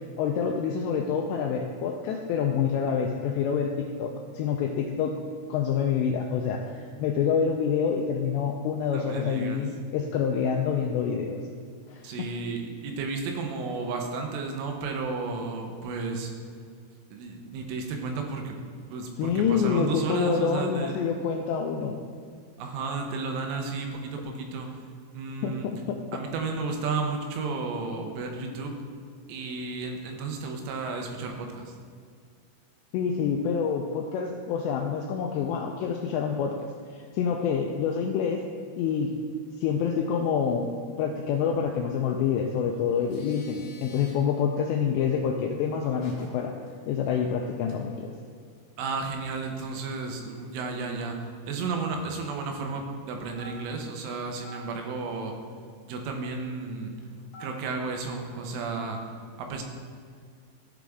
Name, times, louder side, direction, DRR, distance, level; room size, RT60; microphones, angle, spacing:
voice 1, 0.2-5.2 5.5-11.4 11.9-12.3 19.2-22.0 25.4-26.0 32.9-38.4 38.8-39.1 39.6-40.7 41.0-46.5 46.9-48.1, left 7 dB, 85° left, 2 dB, 2.5 m, -27 dB
voice 2, 8.9-9.6 12.0-16.3 17.1-18.6 18.9-21.0 22.6-24.8 25.1-25.7 26.1-28.8 29.3-31.7 48.8-51.2 51.5-55.3 55.9-56.9 57.4-59.0 59.4-59.6, right 4 dB, 90° right, 3 dB, 3.5 m, -33 dB
sound 1, 42.9-44.2 46.0-46.3 46.7-46.8 47.0-47.3 47.7-47.8 48.1-48.2 49.0-50.2 50.6-50.7 50.9-51.0 51.2-51.3 51.9-52.3 53.3-53.9 54.5-54.6 57.0-57.7, right 1 dB, 60° left, 3.3 m, -46 dB
14.5 x 5.0 x 3.5 m, 2.1 s
omnidirectional pair, 5.5 m